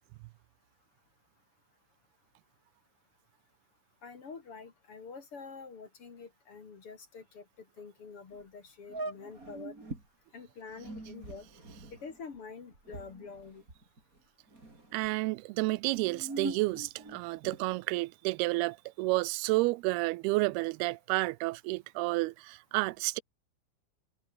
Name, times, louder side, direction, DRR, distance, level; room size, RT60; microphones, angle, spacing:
voice 1, 4.0-7.4 7.8-9.7 10.3-11.5 11.9-13.6, left 5 dB, 40° left, 2.8 m, -47 dB
sound 1, 8.3-8.4 8.9-10.1 10.7-14.2 14.5-15.1 15.8-17.8, right 2 dB, 20° right, 5.1 m, -42 dB
voice 2, 14.9-23.2, right 22 dB, 85° right, 2.5 m, -30 dB
omnidirectional pair, 4.5 m